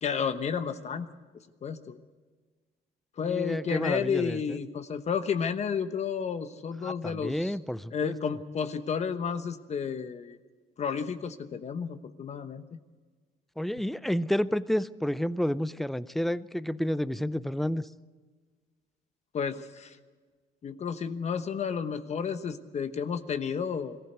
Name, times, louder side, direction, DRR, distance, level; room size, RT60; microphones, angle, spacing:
voice 1, 0.0-1.1 1.6-2.0 3.2-7.6 7.9-10.4 10.8-12.6 19.3-20.0 20.6-24.0, left 6 dB, 40° left, 10 dB, 1.1 m, -31 dB
voice 2, 3.2-4.6 6.8-8.2 13.6-17.9, equal, ahead, 16 dB, 0.6 m, -30 dB
22.0 x 15.0 x 8.1 m, 1.4 s
cardioid pair, 110°, 17 cm